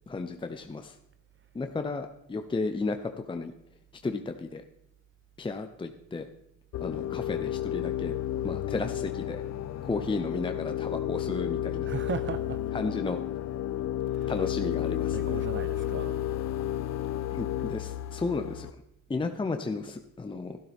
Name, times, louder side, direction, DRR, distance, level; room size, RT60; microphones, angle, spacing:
voice 1, 0.1-0.9 1.5-3.5 4.0-4.6 5.4-6.3 6.8-8.1 8.4-9.4 9.8-11.9 12.7-13.2 14.3-15.4 17.3-18.7 19.1-20.6, left 3 dB, 15° left, 0.6 m, -33 dB
sound 1, 6.7-18.7, left 12 dB, 60° left, 0.5 m, -32 dB
voice 2, 11.8-12.6 14.1-14.5 15.0-16.2, right 6 dB, 40° right, 0.7 m, -37 dB
12.0 x 12.0 x 3.5 m
cardioid pair, 90°, 30 cm